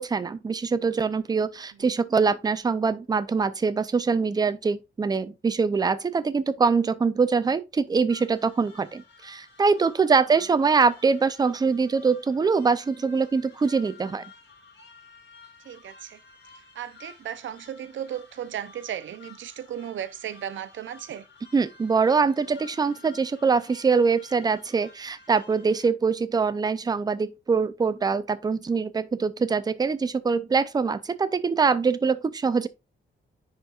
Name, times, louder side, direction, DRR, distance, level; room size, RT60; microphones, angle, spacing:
voice 1, 0.0-14.2 21.5-32.7, right 5 dB, 20° right, 0.4 m, -23 dB
sound 1, 8.1-25.9, left 4 dB, 60° left, 2.3 m, -52 dB
voice 2, 15.6-16.2 16.5-21.3, right 10 dB, 75° right, 0.6 m, -36 dB
10.0 x 4.4 x 2.4 m
wide cardioid pair, 170°, 20 cm